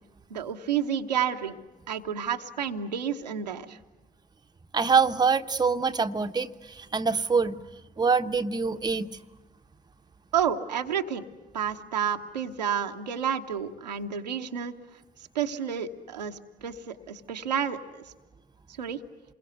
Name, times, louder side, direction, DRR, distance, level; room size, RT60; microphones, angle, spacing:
voice 1, 0.3-1.6 1.9-3.8 10.3-11.2 11.5-14.7 15.3-18.0 18.8-19.0, right 8 dB, 80° right, 4 dB, 1.0 m, -30 dB
voice 2, 4.7-7.6 8.0-9.1, right 5 dB, 20° right, 7 dB, 1.0 m, -25 dB
28.0 x 22.5 x 8.1 m, 1.2 s
figure-of-eight pair, 45°, 21 cm